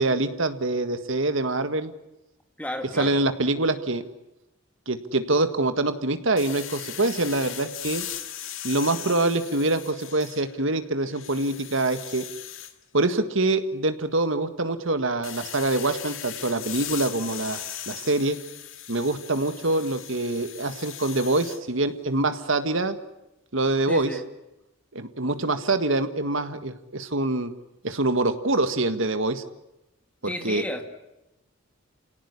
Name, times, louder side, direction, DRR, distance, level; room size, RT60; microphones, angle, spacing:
voice 1, 0.0-1.9 3.0-4.0 4.9-8.1 8.6-12.3 12.9-18.4 18.9-23.0 23.5-24.1 24.9-27.5 27.8-29.4 30.2-30.6, right 2 dB, 65° right, 9 dB, 1.7 m, -25 dB
voice 2, 2.6-3.2 23.9-24.2 30.2-30.8, left 1 dB, 5° left, 5 dB, 2.3 m, -32 dB
sound 1, 6.4-10.7 11.1-12.7 15.2-21.6, left 11 dB, 70° left, 2.0 m, -38 dB
28.5 x 18.0 x 9.9 m, 0.94 s
head